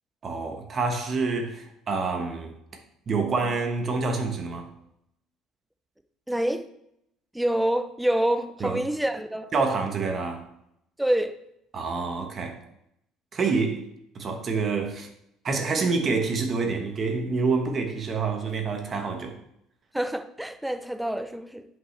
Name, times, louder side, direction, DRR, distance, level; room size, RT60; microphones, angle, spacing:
voice 1, 0.2-2.5 3.1-4.6 8.6-8.8 9.5-10.4 11.7-12.6 13.3-13.8 14.1-15.1 15.4-19.3, right 4 dB, 30° right, 4 dB, 1.2 m, -27 dB
voice 2, 6.3-6.7 7.3-9.5 11.0-11.4 19.9-21.7, right 1 dB, 5° right, 9 dB, 0.5 m, -26 dB
10.5 x 5.4 x 3.3 m, 0.78 s
cardioid pair, 145°, 0 cm